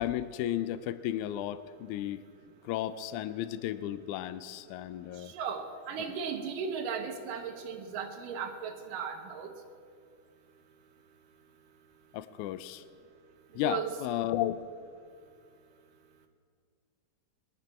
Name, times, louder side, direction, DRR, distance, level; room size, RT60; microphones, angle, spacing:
voice 1, 0.0-2.2 2.6-5.3 12.1-12.8 13.5-14.6, left 12 dB, 90° left, 14 dB, 1.7 m, -33 dB
voice 2, 5.3-9.5 13.6-13.9, right 6 dB, 70° right, 4 dB, 2.8 m, -36 dB
21.0 x 11.5 x 4.4 m, 2.2 s
omnidirectional pair, 4.1 m